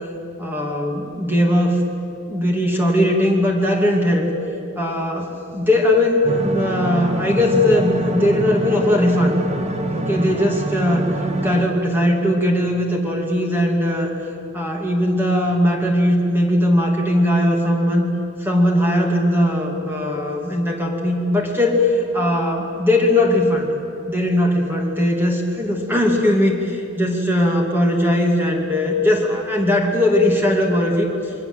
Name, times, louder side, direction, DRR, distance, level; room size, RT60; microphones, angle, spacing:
voice 1, 0.4-1.8 2.3-4.3 4.8-9.4 9.9-11.1 11.4-14.1 14.5-18.1 18.4-23.7 24.1-31.3, left 1 dB, 10° right, 0 dB, 2.5 m, -19 dB
sound 1, 6.2-11.6, right 1 dB, 30° right, 1.7 m, -25 dB
27.5 x 23.0 x 8.0 m, 2.9 s
head